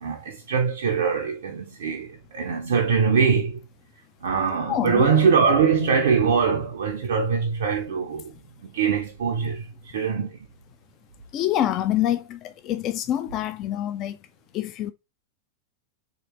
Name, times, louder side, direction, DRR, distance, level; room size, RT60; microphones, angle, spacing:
voice 1, 0.0-3.6 4.2-8.3 8.7-10.4, right 6 dB, 60° right, 0.4 m, -22 dB
voice 2, 4.7-5.1 11.3-14.2 14.5-14.9, left 12 dB, 35° left, 0.3 m, -26 dB
3.2 x 2.9 x 2.9 m
figure-of-eight pair, 90°, 0 cm